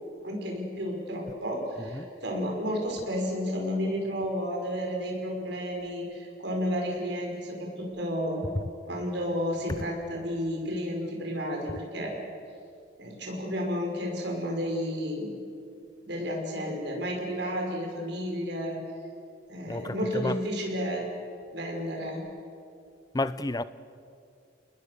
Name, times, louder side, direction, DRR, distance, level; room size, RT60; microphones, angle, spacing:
voice 1, 0.2-8.4 8.9-12.1 13.0-15.3 16.0-18.8 19.5-21.1 21.5-22.2, equal, 65° right, 5.6 m, -32 dB
voice 2, 19.7-20.3 23.1-23.6, left 2 dB, 20° left, 0.6 m, -30 dB
29.5 x 20.5 x 6.7 m
head